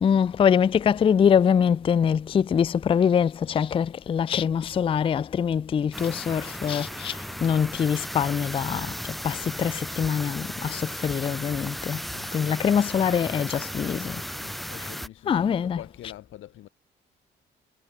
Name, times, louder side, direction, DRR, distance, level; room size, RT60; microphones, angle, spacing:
voice 1, 0.0-12.0 12.3-14.2 15.3-15.8, left 7 dB, 30° left, 0.3 m, -24 dB
sound 1, 5.9-15.1, equal, ahead, 0.9 m, -36 dB
voice 2, 12.1-12.8 14.3-16.7, left 13 dB, 80° left, 5.2 m, -45 dB
cardioid pair, 90°, 20 cm